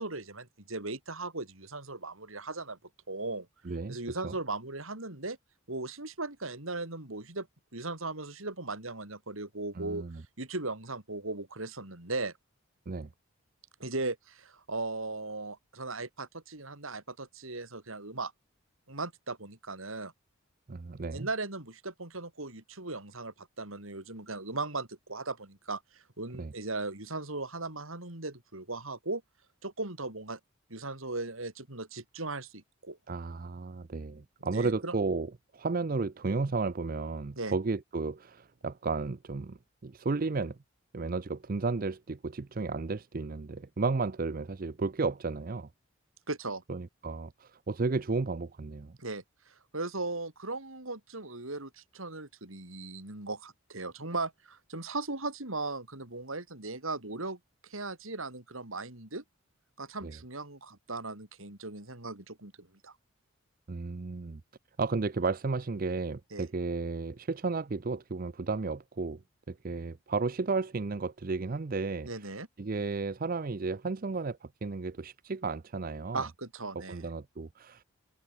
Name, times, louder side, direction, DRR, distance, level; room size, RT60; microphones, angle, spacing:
voice 1, 0.0-2.8 3.1-3.5 3.9-5.4 5.7-7.5 7.7-10.0 10.4-12.3 13.8-18.3 18.9-20.1 21.1-29.2 29.6-30.4 30.7-33.0 34.4-34.9 37.4-37.5 46.3-46.6 49.0-59.2 59.8-62.9 66.3-66.5 72.1-72.5 76.1-77.1, right 3 dB, 80° right, 4.5 m, -38 dB
voice 2, 3.7-4.0 4.2-4.3 9.8-10.2 12.9-13.1 20.7-21.3 26.4-26.5 33.1-39.6 39.8-40.6 40.9-45.7 46.7-48.9 60.0-60.1 63.7-64.4 64.8-69.2 69.5-72.1 72.6-76.3 76.9-77.8, right 3 dB, 45° right, 0.5 m, -33 dB
head